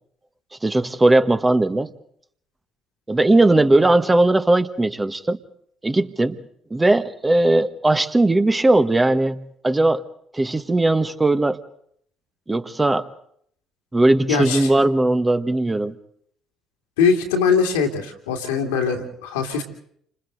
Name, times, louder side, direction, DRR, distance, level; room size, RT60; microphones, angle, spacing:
voice 1, 0.6-1.9 3.1-5.4 5.8-6.4 6.7-10.0 10.3-11.6 12.5-13.1 13.9-15.9, right 2 dB, 15° right, 9 dB, 1.4 m, -18 dB
voice 2, 14.3-14.7 17.0-19.6, left 6 dB, 75° left, 3 dB, 2.6 m, -21 dB
29.5 x 26.0 x 4.0 m, 0.66 s
figure-of-eight pair, 50°, 0 cm